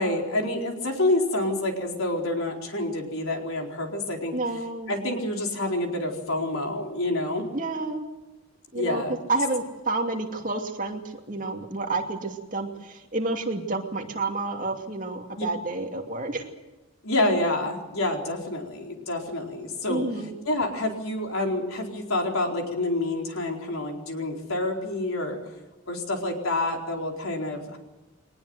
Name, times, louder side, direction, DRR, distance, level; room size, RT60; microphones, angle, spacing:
voice 1, 0.0-4.4 4.9-7.5 8.7-9.1 15.4-15.5 17.0-20.0 20.4-25.4 25.9-27.8, left 2 dB, 85° left, 2 dB, 4.4 m, -28 dB
voice 2, 4.3-5.0 7.5-8.1 8.7-9.0 9.3-11.0 11.3-16.4 19.9-20.3, right 2 dB, 40° right, 3 dB, 2.6 m, -29 dB
23.0 x 19.5 x 8.0 m, 1.1 s
head